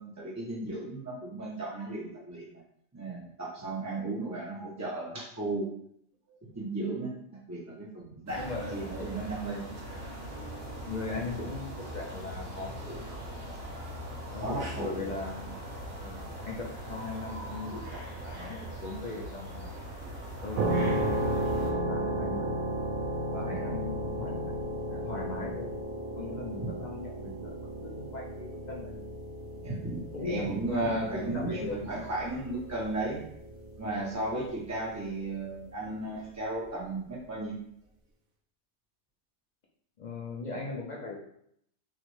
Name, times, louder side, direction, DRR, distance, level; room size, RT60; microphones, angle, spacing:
voice 1, 0.0-2.6 2.9-5.7 6.3-8.5 8.7-9.6 14.4-15.0 23.5-23.8 29.6-33.2 33.8-37.6, right 2 dB, 25° right, -5 dB, 0.4 m, -35 dB
voice 2, 8.3-9.3 9.7-9.8 10.8-13.1 14.3-15.5 16.0-19.6 20.4-22.6 23.3-24.6 24.9-25.7 26.2-27.6 27.8-29.0 30.1-31.9 40.0-41.1, left 3 dB, 55° left, -2 dB, 0.5 m, -39 dB
sound 1, 8.3-21.7, equal, 50° right, 1.0 m, -41 dB
sound 2, 20.6-35.2, right 1 dB, 80° right, 1.1 m, -34 dB
5.7 x 2.1 x 3.1 m, 0.71 s
omnidirectional pair, 1.4 m